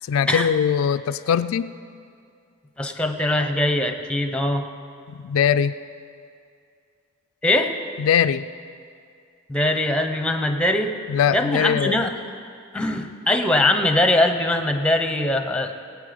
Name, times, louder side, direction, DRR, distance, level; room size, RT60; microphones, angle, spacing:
voice 1, 0.1-1.7 5.1-5.7 8.0-8.4 11.1-12.0, left 8 dB, 75° left, 11 dB, 0.3 m, -21 dB
voice 2, 2.8-4.6 7.4-7.7 9.5-10.9 11.3-12.1 12.7-15.7, left 1 dB, 5° left, 6 dB, 0.7 m, -21 dB
18.5 x 8.5 x 5.1 m, 2.3 s
head